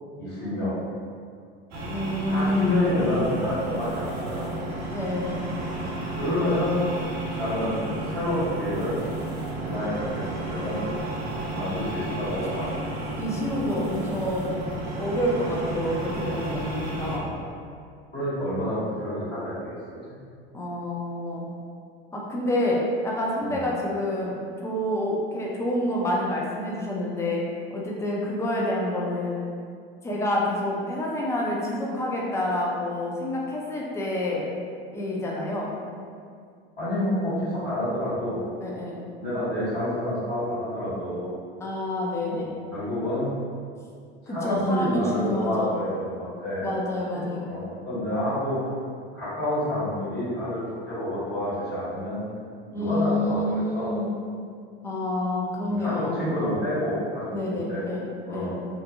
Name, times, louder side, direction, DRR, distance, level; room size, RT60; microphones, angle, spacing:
voice 1, 0.2-0.8 2.3-4.6 5.7-6.8 7.4-9.0 9.6-10.8 11.5-12.8 18.1-20.1 23.4-23.7 36.8-38.5 39.2-41.3 42.3-42.4 42.7-43.3 44.2-46.7 47.1-48.6 49.1-52.2 52.7-54.0 55.8-57.8 58.3-58.5, left 1 dB, 35° left, -11 dB, 1.4 m, -28 dB
sound 1, 1.7-17.2, right 2 dB, 70° right, 0.8 m, -32 dB
voice 2, 1.9-2.9 4.9-5.4 13.2-14.6 15.0-17.3 20.5-21.5 22.1-24.4 24.6-27.4 27.7-29.4 30.0-34.5 34.9-35.7 38.6-39.0 41.6-42.5 44.3-45.7 46.6-47.5 52.7-54.1 54.8-56.3 57.3-58.5, left 1 dB, 10° left, -3 dB, 0.4 m, -28 dB
2.6 x 2.5 x 2.3 m, 2.2 s
hypercardioid pair, 90°, 32 cm